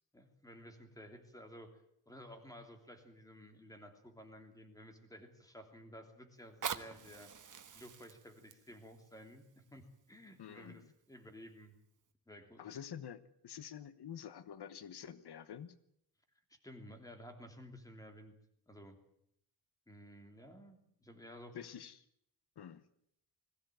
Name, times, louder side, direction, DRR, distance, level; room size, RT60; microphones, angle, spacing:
voice 1, 0.1-7.3 7.7-11.7 12.3-12.6 16.5-18.3 18.7-19.0 19.9-21.6, equal, 10° left, 5 dB, 3.0 m, -54 dB
Fire, 6.4-11.3 12.0-12.1, right 7 dB, 50° right, 1.4 m, -47 dB
voice 2, 10.4-10.9 12.6-15.8 21.5-22.0 22.6-22.9, left 8 dB, 90° left, 14 dB, 1.1 m, -48 dB
21.0 x 16.0 x 9.2 m, 0.74 s
wide cardioid pair, 175°, 39 cm